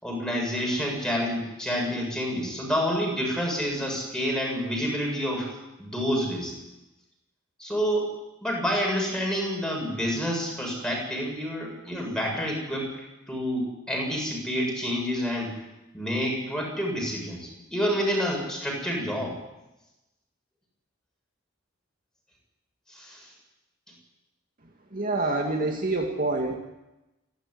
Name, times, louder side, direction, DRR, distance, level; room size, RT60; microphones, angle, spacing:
voice 1, 0.0-5.5 5.8-6.5 7.6-8.1 8.4-12.9 13.3-15.5 15.9-19.4 22.9-23.3, equal, 5° left, -1 dB, 7.7 m, -28 dB
voice 2, 24.9-26.6, right 2 dB, 45° right, 2 dB, 2.3 m, -26 dB
28.0 x 12.5 x 9.9 m, 0.99 s
head